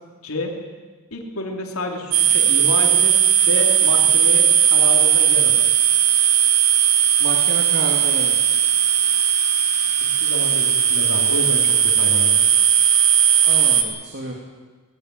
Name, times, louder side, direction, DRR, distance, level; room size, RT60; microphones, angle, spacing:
voice 1, 0.2-0.5 1.1-3.2 3.5-5.6 10.0-12.4, left 2 dB, 75° left, 2 dB, 3.3 m, -29 dB
sound 1, 2.1-13.8, right 9 dB, 90° right, 2.1 m, -17 dB
voice 2, 7.2-8.6 13.4-14.3, right 2 dB, 50° right, 0 dB, 2.7 m, -30 dB
20.5 x 16.0 x 9.2 m, 1.4 s
head